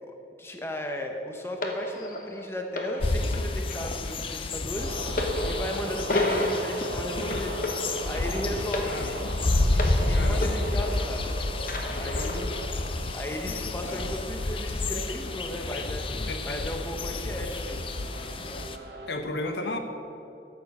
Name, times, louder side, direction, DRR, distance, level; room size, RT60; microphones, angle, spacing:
voice 1, 0.0-7.6 8.1-9.0 9.7-11.3 11.9-12.5 13.1-16.0 16.4-18.0, left 1 dB, 15° left, 3 dB, 0.8 m, -36 dB
sound 1, 1.6-11.3 11.6-12.7 13.5-13.6, left 1 dB, 50° left, 1.1 m, -32 dB
sound 2, 3.0-18.8, left 2 dB, 30° left, 0.5 m, -30 dB
sound 3, 4.8-19.1, right 2 dB, 70° right, 1.1 m, -41 dB
voice 2, 8.8-9.3 10.1-10.6 13.4-14.1 15.7-15.9 16.3-16.6 19.1-19.8, left 2 dB, 80° left, 6 dB, 1.0 m, -35 dB
13.0 x 7.1 x 5.5 m, 2.8 s
head